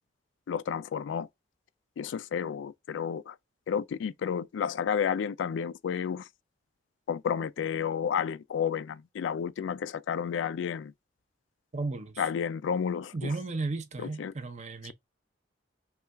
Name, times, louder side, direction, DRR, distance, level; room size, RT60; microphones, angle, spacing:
voice 1, 0.5-1.3 2.0-3.4 3.7-6.3 7.1-10.9 12.2-13.3 14.0-14.3, left 7 dB, 75° left, 0.3 m, -31 dB
voice 2, 11.7-12.2 13.1-14.9, right 3 dB, 40° right, 0.7 m, -34 dB
5.5 x 2.4 x 2.2 m
head